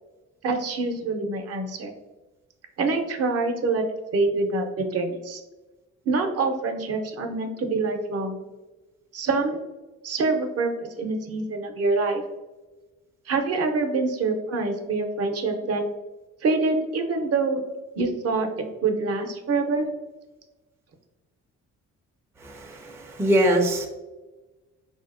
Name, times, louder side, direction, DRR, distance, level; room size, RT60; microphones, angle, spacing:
voice 1, 0.4-1.9 2.8-3.8 4.1-5.4 6.1-8.4 9.1-9.6 10.0-12.2 13.3-15.8 16.4-17.6 18.0-18.5 18.8-19.9, right 3 dB, 55° right, 5 dB, 0.6 m, -25 dB
voice 2, 22.4-23.9, right 1 dB, 10° right, 2 dB, 0.4 m, -23 dB
3.3 x 2.7 x 2.4 m, 1.2 s
cardioid pair, 90°, 30 cm